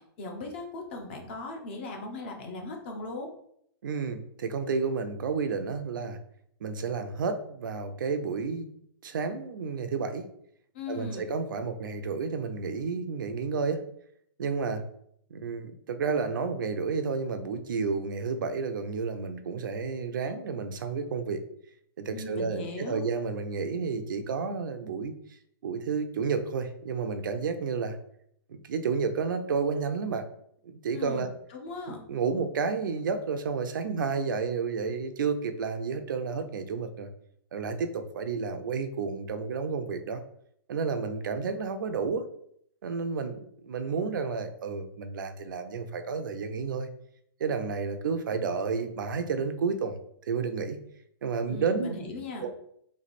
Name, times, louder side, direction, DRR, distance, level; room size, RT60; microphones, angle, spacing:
voice 1, 0.0-3.3 10.7-11.3 22.1-23.0 30.9-32.0 51.5-52.4, left 3 dB, 25° left, 2 dB, 0.6 m, -38 dB
voice 2, 3.8-6.2 6.6-8.7 9.0-10.3 10.9-13.8 14.4-14.8 15.3-21.4 22.0-25.2 25.6-28.0 28.5-30.3 30.6-31.3 31.9-37.1 37.5-40.2 40.7-42.2 42.8-46.9 47.4-50.0 50.3-50.8 51.2-52.0 52.4-52.5, right 5 dB, 55° right, 8 dB, 0.5 m, -31 dB
3.4 x 3.1 x 4.1 m, 0.69 s
hypercardioid pair, 180°, 13 cm